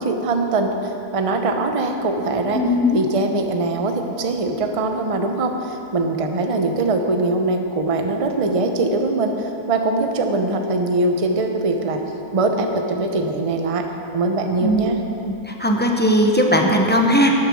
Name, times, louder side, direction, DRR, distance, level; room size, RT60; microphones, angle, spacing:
voice 1, 0.0-2.6 2.9-12.0 12.3-13.8 14.1-15.0, right 2 dB, 30° right, 4 dB, 0.7 m, -22 dB
voice 2, 2.5-3.0 14.6-14.8 15.5-17.3, equal, 10° left, 1 dB, 0.9 m, -18 dB
12.5 x 9.8 x 6.3 m, 2.7 s
omnidirectional pair, 1.7 m